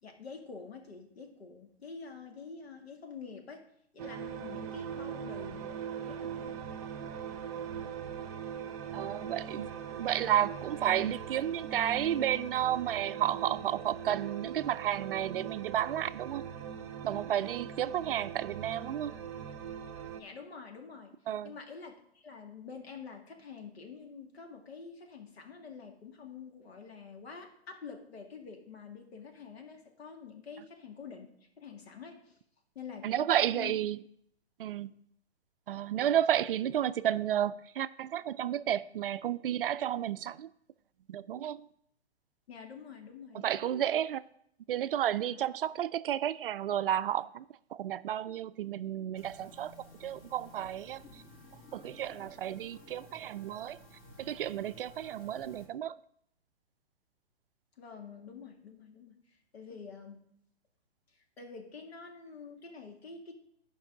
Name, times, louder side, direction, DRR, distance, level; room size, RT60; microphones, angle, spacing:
voice 1, 0.0-3.6 3.9-6.6 8.9-9.0 20.2-21.1 21.4-31.3 31.6-32.4 32.8-33.8 42.5-43.6 45.2-45.4 57.8-60.3 61.1-63.3, left 5 dB, 70° left, 2.1 m, -47 dB
sound 1, 4.0-20.2, right 8 dB, 35° right, 0.8 m, -41 dB
voice 2, 8.9-9.7 10.0-16.4 17.0-19.1 21.3-21.5 33.0-34.0 34.6-34.9 35.7-40.5 41.1-41.7 43.4-44.2 44.7-47.4 47.7-49.7 50.0-51.2 51.7-53.8 54.2-56.0, right 11 dB, 60° right, 0.4 m, -32 dB
sound 2, 49.1-55.7, left 1 dB, 25° left, 1.6 m, -54 dB
10.5 x 5.4 x 4.9 m
hypercardioid pair, 135°, 32 cm